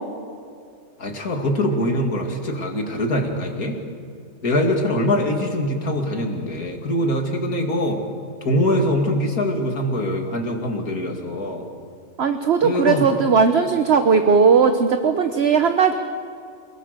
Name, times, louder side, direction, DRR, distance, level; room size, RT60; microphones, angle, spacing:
voice 1, 1.0-3.8 4.4-8.0 8.4-11.7 12.6-13.1, left 1 dB, 85° left, 3 dB, 2.9 m, -23 dB
voice 2, 12.2-15.9, right 5 dB, 50° right, 7 dB, 1.2 m, -17 dB
28.5 x 19.5 x 6.8 m, 2.3 s
omnidirectional pair, 1.5 m